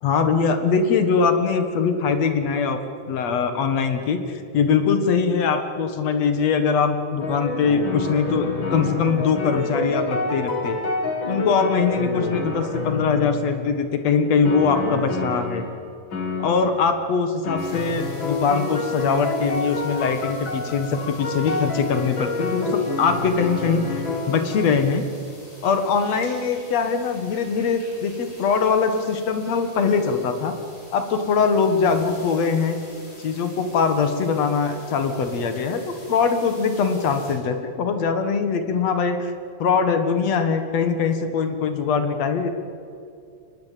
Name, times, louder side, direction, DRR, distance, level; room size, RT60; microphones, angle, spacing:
voice 1, 0.0-2.8 3.1-10.8 11.3-15.6 16.4-25.0 25.6-30.5 30.9-32.8 33.2-39.3 39.6-42.5, left 5 dB, 60° left, 8 dB, 2.5 m, -22 dB
sound 1, 7.2-13.7 14.4-15.8 16.1-16.8 17.4-24.7, left 3 dB, 40° left, 3.0 m, -28 dB
sound 2, 17.6-37.3, left 1 dB, 80° left, 8.5 m, -47 dB
23.5 x 20.5 x 7.6 m, 2.5 s
omnidirectional pair, 3.7 m